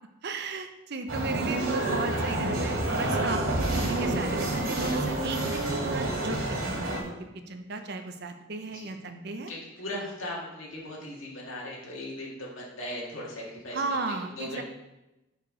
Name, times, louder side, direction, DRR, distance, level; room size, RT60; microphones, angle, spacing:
voice 1, 0.2-9.5 13.7-14.6, right 3 dB, 55° right, 7 dB, 0.7 m, -35 dB
sound 1, 1.1-7.0, right 1 dB, 85° right, 2.4 m, -28 dB
voice 2, 9.5-14.6, left 1 dB, 85° left, -4 dB, 2.0 m, -38 dB
5.8 x 4.7 x 5.0 m, 0.98 s
head